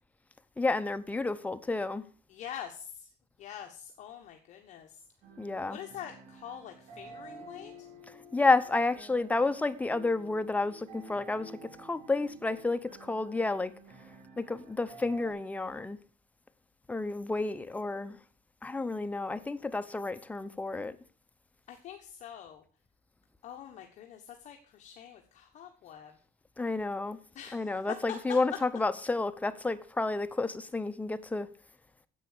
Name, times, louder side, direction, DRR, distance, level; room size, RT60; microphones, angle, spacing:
voice 1, 0.6-2.0 5.4-5.8 8.1-13.7 14.4-16.0 16.9-18.2 18.6-21.0 26.6-27.2 27.5-31.5, left 3 dB, 10° left, 0.7 m, -30 dB
voice 2, 2.3-3.1 3.4-5.0 5.7-7.9 21.7-22.6 23.4-26.1 27.3-27.7, left 9 dB, 50° left, 1.3 m, -45 dB
sound 1, 5.2-15.3, right 3 dB, 50° right, 3.4 m, -51 dB
10.0 x 8.2 x 6.7 m
cardioid pair, 140°, 15 cm